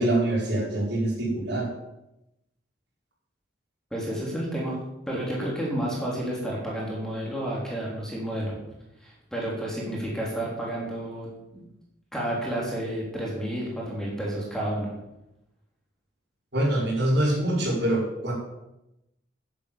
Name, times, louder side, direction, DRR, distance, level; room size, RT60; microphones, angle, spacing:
voice 1, 0.0-1.7 16.5-18.3, right 1 dB, 55° right, -3 dB, 5.1 m, -24 dB
voice 2, 3.9-4.8 5.1-8.5 9.0-11.3 11.5-11.6 12.1-14.9, right 1 dB, 5° left, -4 dB, 3.6 m, -30 dB
11.0 x 10.5 x 7.1 m, 0.90 s
head